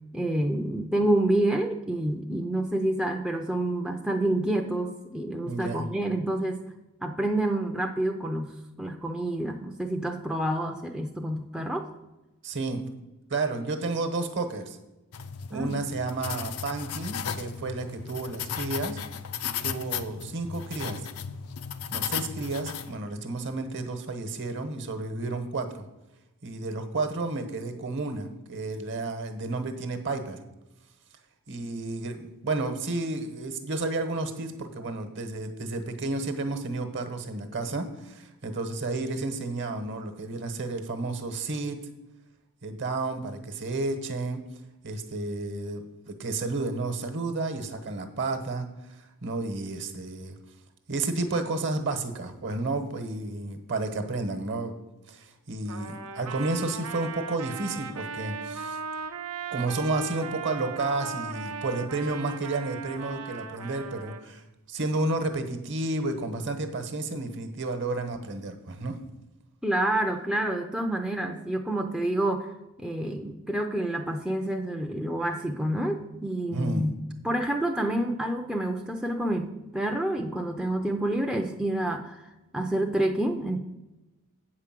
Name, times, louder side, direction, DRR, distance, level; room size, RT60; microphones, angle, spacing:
voice 1, 0.1-6.6 7.0-11.9 15.5-15.7 69.6-83.6, right 1 dB, 5° right, 1 dB, 0.4 m, -28 dB
voice 2, 5.5-5.9 12.4-12.9 13.3-14.8 15.5-19.0 19.6-21.0 21.9-25.9 26.4-30.4 31.5-41.8 42.6-44.4 44.8-50.3 50.9-54.7 55.1-58.8 59.5-69.0 76.5-76.9, right 2 dB, 55° right, 7 dB, 1.1 m, -31 dB
sound 1, 15.1-23.0, left 7 dB, 70° left, 0.5 m, -35 dB
Trumpet, 55.7-64.2, right 6 dB, 90° right, 0.8 m, -38 dB
8.2 x 4.8 x 7.4 m, 1.0 s
head